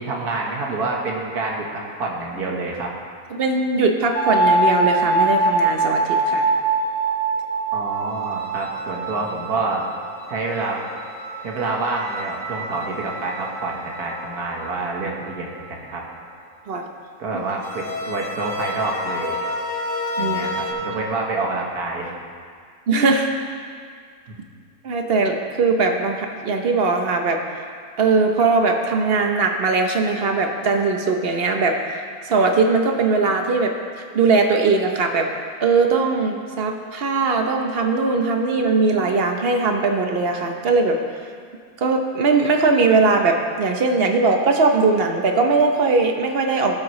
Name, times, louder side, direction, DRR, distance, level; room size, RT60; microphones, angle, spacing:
voice 1, 0.0-2.9 7.7-9.9 10.3-10.8 11.4-16.0 17.2-19.4 20.2-22.1, right 3 dB, 90° right, -1 dB, 1.9 m, -27 dB
voice 2, 3.3-6.5 16.7-16.8 20.2-20.4 22.9-23.5 24.8-27.4 28.0-33.7 34.1-35.3 35.6-41.0 41.8-46.8, right 4 dB, 45° right, 4 dB, 0.9 m, -20 dB
sound 1, 4.1-15.8 17.6-20.7, right 2 dB, 60° left, 1.9 m, -25 dB
16.5 x 7.6 x 3.2 m, 2.1 s
omnidirectional pair, 1.6 m